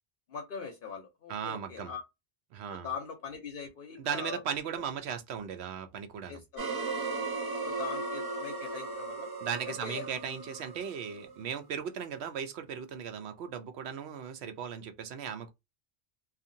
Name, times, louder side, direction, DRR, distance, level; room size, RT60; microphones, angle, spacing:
voice 1, 0.3-2.0 2.7-4.4 4.7-4.9 6.3-9.3 9.7-10.2, left 6 dB, 60° left, 0.8 m, -42 dB
voice 2, 1.3-1.9 2.5-2.9 4.0-6.4 9.4-15.5, right 7 dB, 80° right, 0.9 m, -37 dB
sound 1, 6.6-11.6, right 3 dB, 40° right, 0.3 m, -37 dB
2.7 x 2.5 x 2.6 m
omnidirectional pair, 1.1 m